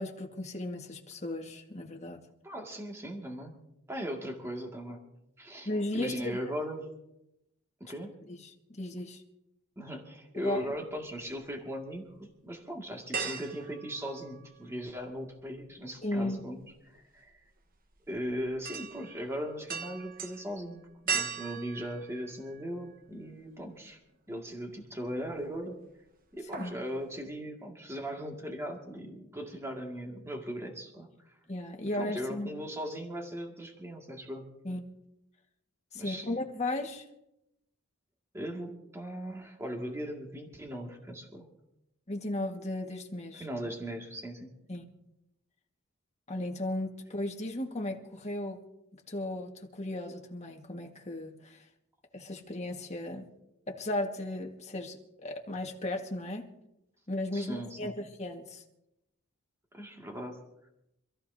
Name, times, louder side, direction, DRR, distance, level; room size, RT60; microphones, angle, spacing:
voice 1, 0.0-2.2 5.6-6.4 8.3-8.4 8.7-9.2 10.4-10.7 16.0-16.4 26.5-26.8 31.5-32.5 34.6-34.8 35.9-37.0 42.1-43.4 44.7-44.8 46.3-48.6 49.1-51.6 52.1-53.3 53.7-56.5 57.1-58.6, left 1 dB, 35° left, 1.7 m, -35 dB
voice 2, 2.4-3.6 3.9-5.0 5.4-6.9 7.8-8.1 9.8-17.4 18.1-24.0 24.3-25.8 26.3-31.1 31.9-34.5 35.9-36.3 38.3-41.5 43.3-44.5 57.3-57.9 59.7-60.4, equal, 15° right, 2.2 m, -38 dB
sound 1, 10.5-11.5 11.9-12.0 13.1-14.9 15.1-23.0 23.5-23.6 25.0-25.6 25.9-26.1 26.3-26.9 27.2-27.3, right 6 dB, 45° right, 1.3 m, -39 dB
26.5 x 14.5 x 2.8 m
head